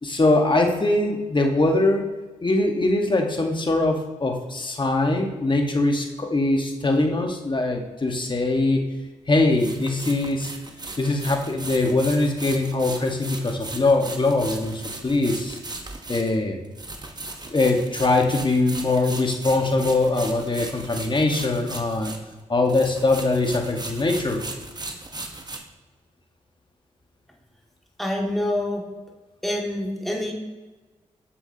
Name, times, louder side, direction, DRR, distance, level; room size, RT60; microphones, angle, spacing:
voice 1, 0.0-2.1 2.4-8.8 9.3-10.5 11.0-15.6 16.1-16.6 17.5-22.1 22.5-24.4, left 2 dB, 35° left, 3 dB, 1.4 m, -22 dB
sound 1, 9.5-22.4 22.7-25.6, right 2 dB, 30° right, 1.0 m, -37 dB
voice 2, 28.0-28.9 29.4-30.3, left 1 dB, ahead, -1 dB, 1.9 m, -26 dB
7.1 x 7.1 x 2.8 m, 1.2 s
supercardioid pair, 40°, 14 cm